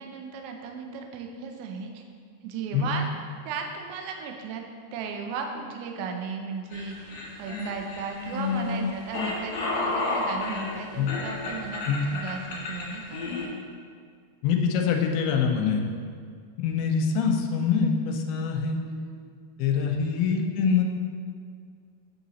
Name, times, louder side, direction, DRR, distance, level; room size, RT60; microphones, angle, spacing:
voice 1, 0.0-2.0 2.4-3.1 3.5-13.2 18.3-19.2 19.7-20.2, right 5 dB, 80° right, 3 dB, 2.3 m, -36 dB
sound 1, 6.7-13.4, left 3 dB, 55° left, 2.4 m, -31 dB
voice 2, 14.4-16.0 16.6-18.8 19.6-20.8, left 6 dB, 80° left, 2 dB, 2.5 m, -24 dB
8.5 x 4.1 x 4.0 m, 2.1 s
omnidirectional pair, 4.7 m